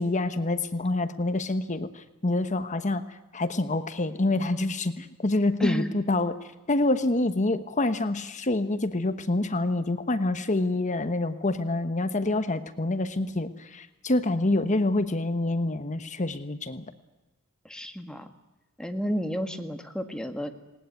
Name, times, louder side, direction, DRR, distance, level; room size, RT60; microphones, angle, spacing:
voice 1, 0.0-6.3 6.7-16.9, left 2 dB, 35° left, 11 dB, 1.2 m, -27 dB
voice 2, 5.6-6.0 17.7-18.3 18.8-20.5, equal, 5° left, 6 dB, 1.7 m, -31 dB
19.5 x 19.0 x 9.5 m, 1.1 s
head